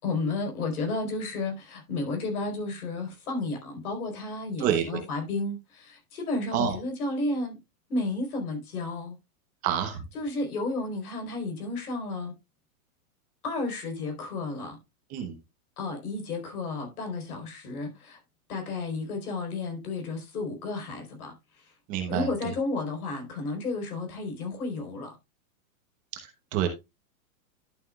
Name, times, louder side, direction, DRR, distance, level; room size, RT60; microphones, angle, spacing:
voice 1, 0.0-7.6 7.9-9.2 10.1-12.3 13.4-14.8 15.8-18.2 18.5-21.7 22.1-25.1, left 3 dB, 80° left, 4.2 m, -32 dB
voice 2, 4.6-5.0 6.5-6.7 9.6-10.0 15.1-15.4 21.9-22.3 26.1-26.7, right 9 dB, 20° right, 0.8 m, -28 dB
11.0 x 7.2 x 2.3 m
supercardioid pair, 175°, 43 cm